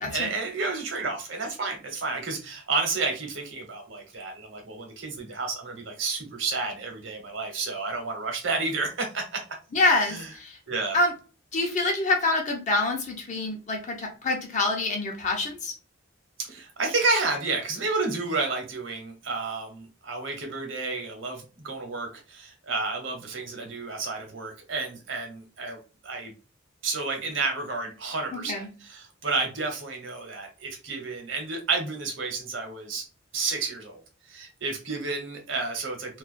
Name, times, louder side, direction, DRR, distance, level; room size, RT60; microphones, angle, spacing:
voice 1, 0.1-9.4 10.1-10.3 10.7-11.0 16.4-25.8 26.0-26.3 26.8-33.0 33.3-34.0 34.3-36.2, right 3 dB, 75° right, 3 dB, 0.9 m, -31 dB
voice 2, 9.7-10.6 10.9-11.1 11.5-15.7 28.5-28.7, left 2 dB, 40° left, 1 dB, 0.6 m, -26 dB
2.4 x 2.2 x 2.4 m, 0.34 s
head